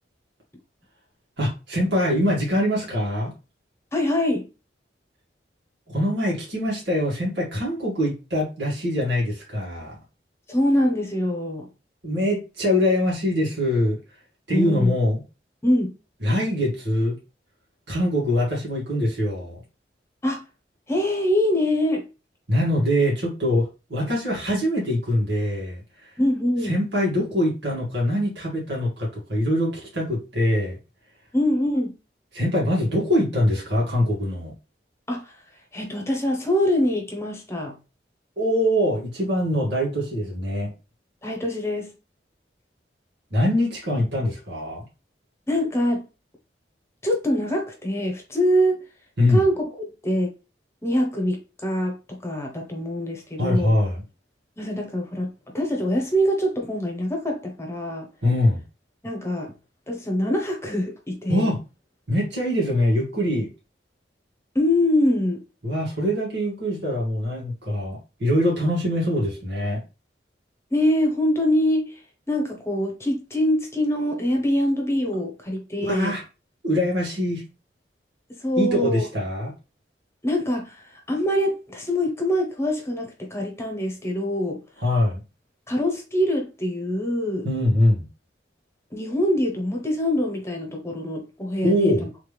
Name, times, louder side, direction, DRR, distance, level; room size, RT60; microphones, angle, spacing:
voice 1, 1.4-3.3 5.9-10.0 12.0-14.0 14.5-15.2 16.2-17.2 17.9-19.6 22.5-25.8 26.6-30.8 32.3-34.5 38.4-40.7 43.3-44.8 49.2-49.4 53.4-54.0 58.2-58.6 61.3-61.6 62.1-63.5 65.6-69.8 75.8-76.2 76.6-77.4 78.6-79.5 84.8-85.2 87.4-88.1 91.6-92.1, left 1 dB, 90° right, 2.1 m, -23 dB
voice 2, 3.9-4.5 10.5-11.7 14.5-14.9 15.6-15.9 20.2-20.4 20.9-22.0 26.2-26.7 31.3-31.9 35.1-35.4 35.7-37.8 41.2-41.9 45.5-46.0 47.0-48.8 49.3-50.3 50.8-53.8 54.6-58.1 59.0-59.5 59.9-61.5 64.5-65.4 70.7-72.0 72.3-76.2 78.4-79.0 80.2-84.6 85.7-87.5 88.9-92.1, left 1 dB, 15° left, 1.0 m, -24 dB
3.5 x 3.4 x 3.3 m
head